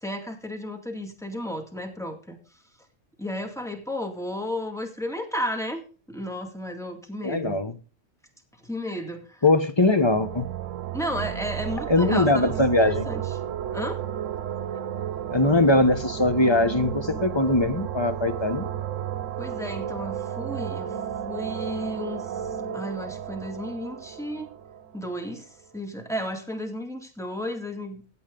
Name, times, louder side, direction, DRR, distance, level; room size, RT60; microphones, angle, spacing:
voice 1, 0.0-2.4 3.2-5.8 6.1-7.6 8.6-9.4 10.9-13.2 13.7-14.0 19.4-21.0 21.2-24.5 24.9-28.0, equal, ahead, 2.2 m, -33 dB
voice 2, 7.2-7.8 9.4-10.5 11.9-13.1 15.3-18.7, left 2 dB, 25° left, 1.0 m, -21 dB
sound 1, 9.9-25.5, right 9 dB, 85° right, 1.1 m, -33 dB
16.0 x 8.8 x 3.9 m
omnidirectional pair, 1.3 m